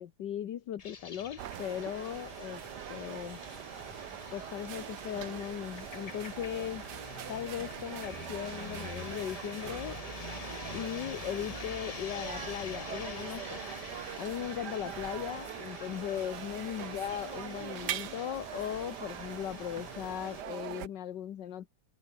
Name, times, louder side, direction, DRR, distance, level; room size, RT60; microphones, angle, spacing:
voice 1, 0.0-2.6 2.9-3.4 4.3-6.8 7.3-10.0 10.7-13.6 14.2-21.7, left 10 dB, 85° left, 1.8 m, -38 dB
sound 1, 0.8-20.4, left 5 dB, 30° left, 0.7 m, -46 dB
sound 2, 1.4-20.9, right 11 dB, 75° right, 1.5 m, -42 dB
Singing, 2.5-6.2 6.5-9.8 10.8-10.9 11.3-15.5 16.1-16.3 16.5-17.3, right 1 dB, 20° right, 4.3 m, -66 dB
omnidirectional pair, 1.8 m